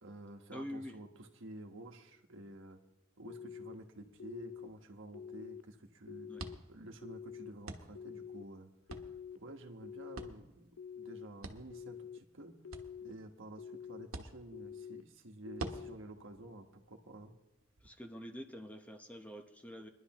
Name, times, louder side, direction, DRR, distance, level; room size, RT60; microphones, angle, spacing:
voice 1, 0.0-2.8 3.2-6.3 6.7-8.7 9.3-12.5 13.0-17.3, right 1 dB, 65° right, 4 dB, 1.3 m, -51 dB
voice 2, 0.5-1.0 6.3-6.5 17.8-19.9, equal, 5° left, 4 dB, 0.8 m, -46 dB
sound 1, 3.3-3.7 4.2-4.7 5.1-5.6 6.1-6.6 7.0-7.5 7.9-8.4 8.9-9.4 9.8-10.3 10.8-11.3 11.7-12.2 12.6-13.1 13.6-14.1 14.5-15.0 15.5-15.9, left 7 dB, 80° left, 0.6 m, -47 dB
sound 2, 3.7-17.9, right 2 dB, 90° right, 1.2 m, -51 dB
22.5 x 11.5 x 3.0 m, 0.91 s
head